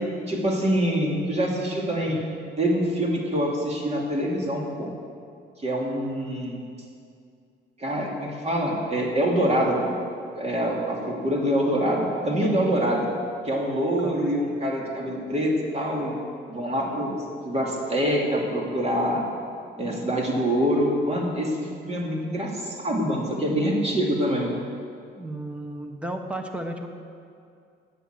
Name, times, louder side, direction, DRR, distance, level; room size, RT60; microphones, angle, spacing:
voice 1, 0.3-2.2 2.6-4.9 5.6-6.6 7.8-10.0 10.4-13.1 13.4-16.2 16.5-17.2 17.4-19.2 19.8-24.5, equal, 30° right, -2 dB, 2.5 m, -25 dB
voice 2, 14.0-14.3 25.2-26.9, right 1 dB, 5° right, 4 dB, 1.1 m, -34 dB
9.9 x 7.4 x 7.5 m, 2.3 s
cardioid pair, 90°, 20 cm